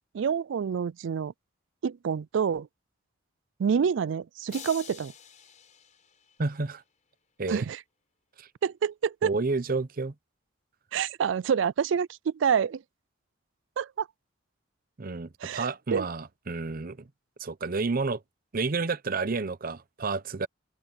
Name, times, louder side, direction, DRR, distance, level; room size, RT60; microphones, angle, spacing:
voice 1, 0.1-1.3 1.8-2.7 3.6-5.1 7.5-7.8 8.6-9.3 10.9-12.8 13.8-14.1 15.4-16.1, right 7 dB, 70° right, 0.4 m, -27 dB
sound 1, 4.5-6.8, left 8 dB, 40° left, 4.7 m, -48 dB
voice 2, 6.4-6.8 7.4-7.7 8.4-8.5 9.2-10.1 15.0-17.1 17.4-18.2 18.5-20.5, right 3 dB, 50° right, 0.7 m, -30 dB
head